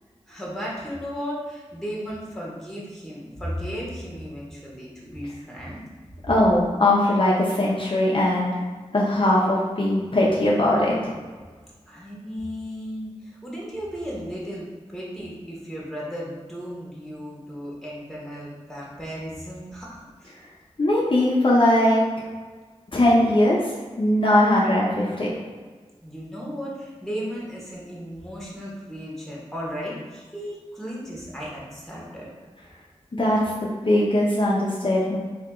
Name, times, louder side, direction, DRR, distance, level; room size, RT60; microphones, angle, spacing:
voice 1, 0.3-5.8 11.9-20.4 26.0-32.3, equal, ahead, -5 dB, 1.4 m, -35 dB
voice 2, 6.3-8.5 8.9-11.1 20.8-22.0 22.9-23.6 24.0-25.4 33.1-35.2, left 1 dB, 45° left, -5 dB, 0.7 m, -20 dB
3.6 x 2.8 x 3.6 m, 1.5 s
wide cardioid pair, 50°, 12 cm